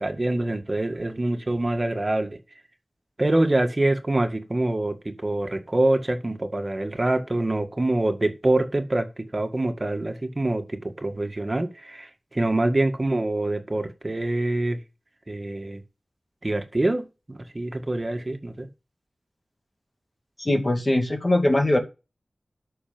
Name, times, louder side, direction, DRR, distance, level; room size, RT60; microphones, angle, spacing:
voice 1, 0.0-2.4 3.2-14.8 15.3-15.8 16.4-18.7, right 2 dB, 35° right, 2.0 m, -25 dB
voice 2, 20.4-21.8, left 1 dB, 35° left, 2.4 m, -21 dB
11.5 x 6.5 x 5.3 m
wide cardioid pair, 60°, 0 cm